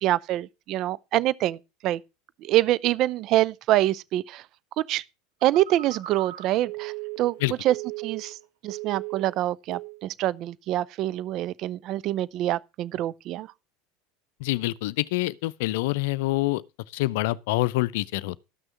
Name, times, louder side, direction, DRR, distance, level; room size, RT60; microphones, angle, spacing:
voice 1, 0.0-2.0 2.4-4.4 4.8-5.0 5.4-8.4 8.6-13.5, right 14 dB, 50° right, 0.5 m, -25 dB
Telephone, 5.4-8.4 8.7-9.4 9.7-10.0, right 18 dB, 70° right, 1.7 m, -37 dB
voice 2, 14.4-16.6 16.9-18.4, left 19 dB, 65° left, 0.5 m, -26 dB
13.0 x 6.2 x 5.7 m
hypercardioid pair, 80°, 0 cm